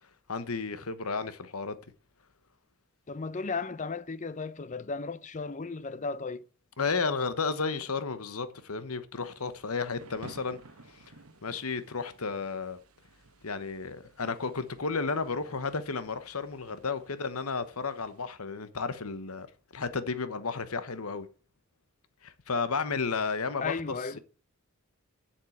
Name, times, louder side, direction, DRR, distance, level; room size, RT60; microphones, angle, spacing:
voice 1, 0.3-1.8 6.8-10.6 10.9-11.0 11.4-12.8 13.4-19.5 19.7-21.3 22.2-23.7, left 4 dB, 90° left, 1.1 m, -32 dB
voice 2, 3.1-6.5 23.6-24.2, left 4 dB, 35° left, 0.5 m, -35 dB
Thunder / Rain, 9.2-18.2, right 3 dB, 85° right, 1.2 m, -55 dB
7.5 x 7.5 x 8.5 m
head